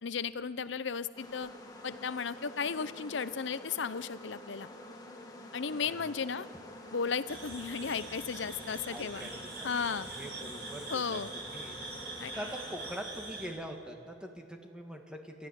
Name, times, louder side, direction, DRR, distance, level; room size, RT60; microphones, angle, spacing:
voice 1, 0.0-1.5 1.8-4.7 5.5-6.5 6.9-9.3 9.6-10.1 10.9-11.3 12.2-12.3, left 6 dB, 70° left, 15 dB, 0.6 m, -35 dB
sound 1, 1.1-13.0, left 1 dB, 20° left, 1.9 m, -48 dB
sound 2, 7.3-13.5, right 3 dB, 55° right, 7.5 m, -44 dB
voice 2, 8.9-9.3 9.6-9.7 10.1-11.2 11.5-11.8 12.3-15.5, equal, 5° right, 3 dB, 1.8 m, -43 dB
27.5 x 14.0 x 9.8 m, 2.7 s
head